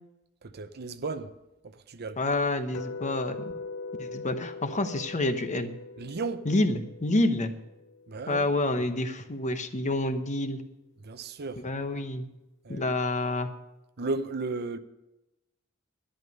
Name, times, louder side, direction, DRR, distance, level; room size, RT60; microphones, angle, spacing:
voice 1, 0.4-1.3 1.6-2.2 6.0-6.5 8.1-8.5 11.0-11.6 12.6-12.9 14.0-14.8, right 3 dB, 50° right, 0.7 m, -34 dB
voice 2, 2.2-3.5 4.0-5.7 6.4-7.5 8.3-10.6 11.6-12.3 12.7-13.5, left 2 dB, 35° left, 1.0 m, -28 dB
sound 1, 2.7-8.8, left 3 dB, 60° left, 0.5 m, -41 dB
11.5 x 11.0 x 5.3 m
head